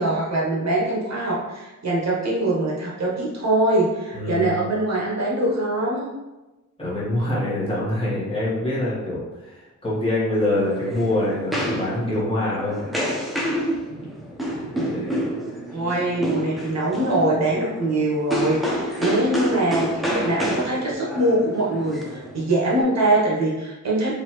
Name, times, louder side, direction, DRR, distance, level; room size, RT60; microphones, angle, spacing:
voice 1, 0.0-6.1 15.7-24.1, right 1 dB, 60° right, -5 dB, 1.0 m, -23 dB
voice 2, 4.1-4.6 6.8-12.9 13.3-14.1 14.7-15.1 15.5-15.6, left 1 dB, 20° left, -8 dB, 1.3 m, -25 dB
sound 1, 10.3-22.8, equal, ahead, 0.5 m, -29 dB
4.0 x 2.7 x 3.0 m, 1.1 s
wide cardioid pair, 150°, 31 cm